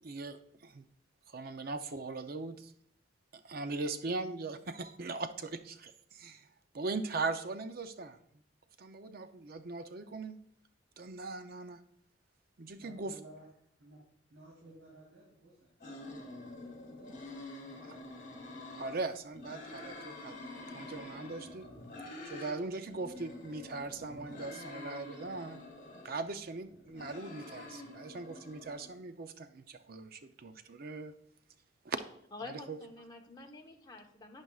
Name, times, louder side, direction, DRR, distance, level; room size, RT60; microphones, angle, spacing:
voice 1, 0.0-0.8 1.3-2.7 3.4-6.5 6.7-8.2 8.8-10.4 11.0-11.8 12.6-13.1 17.8-18.0 18.7-20.4 20.7-21.7 22.2-25.6 26.0-31.1 31.8-32.0 32.4-32.8, right 3 dB, 50° right, 9 dB, 0.5 m, -40 dB
voice 2, 12.8-13.5 13.8-14.0 14.3-18.4, right 1 dB, 80° right, -6 dB, 3.7 m, -57 dB
sound 1, 15.8-19.0 19.3-22.5 22.9-26.2 26.7-28.9, left 2 dB, 40° left, 3.0 m, -47 dB
voice 3, 32.3-34.4, left 3 dB, 20° left, 2 dB, 1.0 m, -48 dB
11.5 x 9.5 x 2.4 m, 0.67 s
head